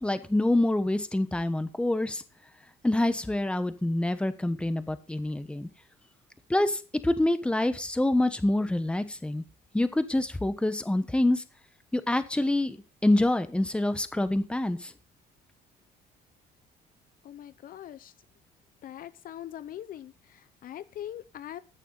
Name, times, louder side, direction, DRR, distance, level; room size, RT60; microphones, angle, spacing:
voice 1, 0.0-2.2 2.8-5.7 6.5-9.4 9.7-11.4 11.9-12.8 13.0-14.9, left 1 dB, 5° left, 11 dB, 1.1 m, -26 dB
voice 2, 17.2-18.1 18.8-21.6, left 11 dB, 55° left, 15 dB, 0.6 m, -42 dB
14.0 x 6.7 x 4.0 m, 0.34 s
cardioid pair, 110°, 17 cm